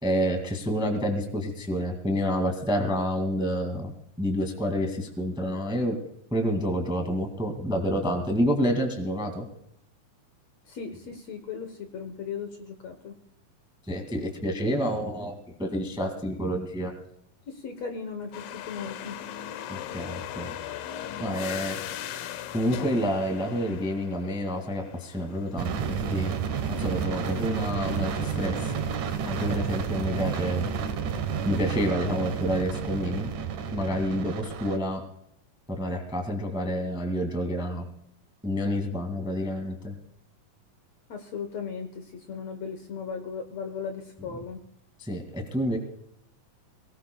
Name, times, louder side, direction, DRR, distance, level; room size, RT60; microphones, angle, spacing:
voice 1, 0.0-3.9 4.2-6.0 6.3-9.4 13.9-15.3 15.6-16.9 19.7-20.5 21.2-21.8 22.5-26.3 26.7-28.7 29.2-30.7 31.4-33.3 33.7-35.0 35.8-37.8 38.4-39.9 45.1-45.8, equal, ahead, 4 dB, 1.2 m, -28 dB
voice 2, 10.7-13.2 17.5-19.2 41.1-44.6, left 6 dB, 60° left, 6 dB, 1.9 m, -37 dB
sound 1, 18.3-29.9, left 11 dB, 80° left, 2.6 m, -40 dB
sound 2, 25.6-34.8, right 7 dB, 70° right, 2.6 m, -30 dB
23.5 x 19.0 x 2.3 m, 0.75 s
omnidirectional pair, 4.0 m